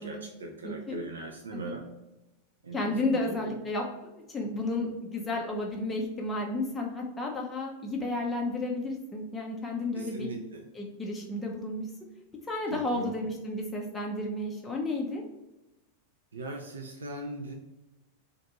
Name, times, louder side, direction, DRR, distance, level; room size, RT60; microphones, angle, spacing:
voice 1, 0.0-1.8 2.6-2.8 3.1-3.5 9.9-10.6 12.7-13.1 16.3-17.5, right 2 dB, 70° right, 2 dB, 0.4 m, -39 dB
voice 2, 0.6-1.0 1.5-1.7 2.7-10.3 10.7-11.9 12.5-15.2, left 2 dB, 15° left, -1 dB, 0.5 m, -32 dB
2.6 x 2.5 x 4.2 m, 0.98 s
figure-of-eight pair, 90°, 0 cm